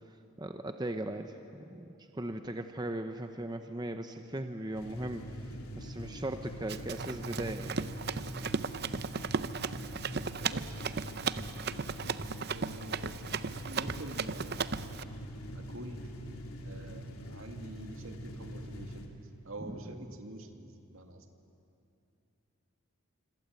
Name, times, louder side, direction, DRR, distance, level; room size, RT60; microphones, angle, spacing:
voice 1, 0.4-7.9 19.6-20.2, right 1 dB, 20° right, 7 dB, 0.8 m, -38 dB
sound 1, 4.7-19.1, equal, 85° left, 2.8 m, -44 dB
Run, 6.7-15.0, right 5 dB, 45° right, 0.6 m, -36 dB
voice 2, 12.5-13.4 13.6-14.8 15.5-16.0 16.6-19.1 19.4-21.2, right 1 dB, 70° right, 4 dB, 2.3 m, -47 dB
26.5 x 25.5 x 8.3 m, 2.7 s
head